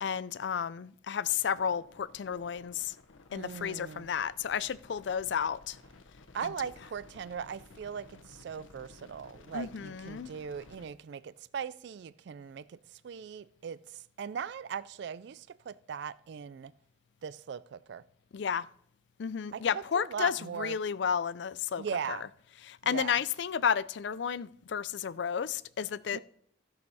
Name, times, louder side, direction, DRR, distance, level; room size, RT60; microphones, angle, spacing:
voice 1, 0.0-2.9 3.3-5.8 9.5-10.3 18.3-18.7 19.2-22.2 22.6-26.2, left 7 dB, 60° left, 0.4 m, -32 dB
sound 1, 1.3-10.9, left 2 dB, 90° left, 1.0 m, -55 dB
voice 2, 3.3-4.1 6.3-16.7 17.2-18.0 19.5-20.7 21.8-22.3 22.8-23.2 26.1-26.2, right 7 dB, 60° right, 0.3 m, -39 dB
15.0 x 6.5 x 4.1 m
head